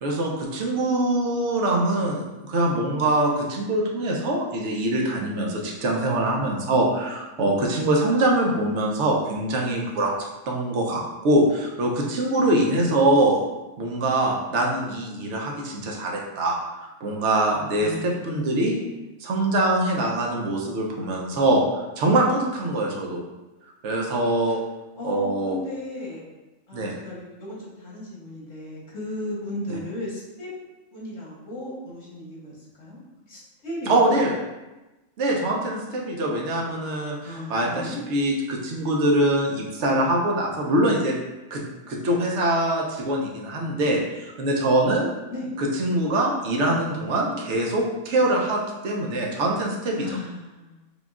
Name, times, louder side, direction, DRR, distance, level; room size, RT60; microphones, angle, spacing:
voice 1, 0.0-13.4 13.8-18.8 19.2-21.6 22.0-23.2 23.8-24.6 25.0-25.6 26.7-27.0 29.7-29.8 33.9-34.3 35.2-41.2 41.5-45.1 45.6-50.1, right 1 dB, 75° right, -1 dB, 1.0 m, -23 dB
voice 2, 17.8-18.2 18.6-19.0 24.5-24.6 25.0-26.2 26.7-30.5 30.9-34.2 37.2-38.0 45.3-45.5 50.0-50.9, left 1 dB, 80° left, -6 dB, 1.8 m, -35 dB
6.8 x 2.4 x 2.4 m, 1.1 s
omnidirectional pair, 1.3 m